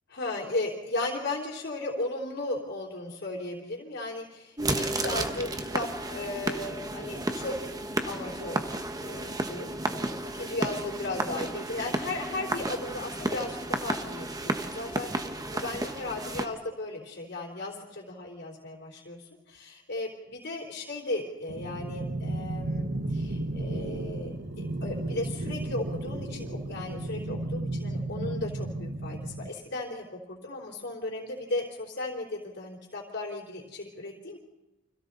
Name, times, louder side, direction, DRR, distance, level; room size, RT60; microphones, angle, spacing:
voice 1, 0.1-7.5 8.0-34.4, left 2 dB, 60° left, -1 dB, 3.5 m, -36 dB
sound 1, 4.6-16.5, right 2 dB, 20° right, 1.3 m, -32 dB
sound 2, 21.5-29.5, right 1 dB, 70° right, 1.5 m, -33 dB
30.0 x 25.5 x 4.1 m, 1.0 s
head